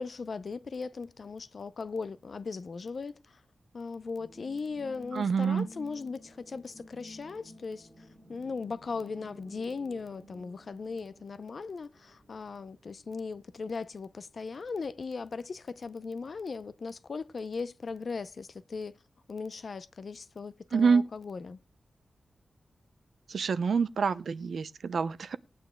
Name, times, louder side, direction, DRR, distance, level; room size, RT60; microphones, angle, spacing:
voice 1, 0.0-3.4 3.7-19.0 19.3-21.6, left 4 dB, 50° left, 0.6 m, -38 dB
sound 1, 4.2-13.7 14.1-14.2, equal, 20° right, 2.7 m, -53 dB
voice 2, 5.1-5.7 20.7-21.0 23.3-25.4, right 5 dB, 75° right, 0.7 m, -26 dB
19.5 x 9.1 x 2.3 m
wide cardioid pair, 165°, 0 cm